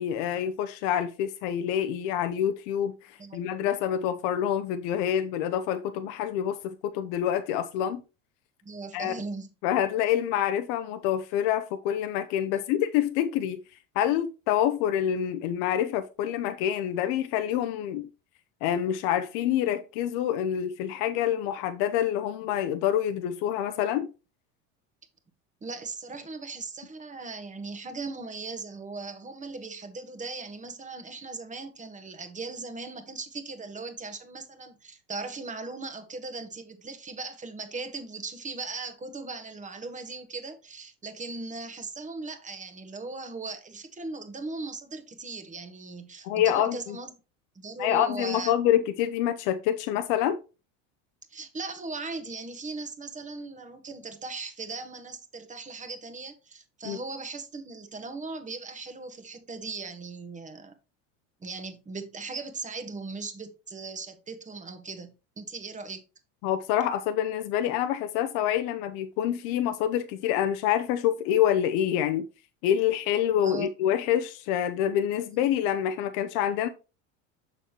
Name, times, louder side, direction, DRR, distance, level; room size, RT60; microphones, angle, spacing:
voice 1, 0.0-8.0 8.9-9.1 9.6-13.6 14.0-18.1 18.6-24.1 46.2-47.0 47.8-50.4 56.8-57.0 66.4-72.2 72.6-76.7, left 10 dB, 70° left, 0.8 m, -27 dB
voice 2, 8.6-9.5 12.5-12.6 25.6-47.1 47.5-48.5 51.3-60.7 61.4-66.0 73.4-73.7, right 3 dB, 20° right, 1.3 m, -38 dB
6.7 x 6.3 x 3.0 m
supercardioid pair, 100°, 38 cm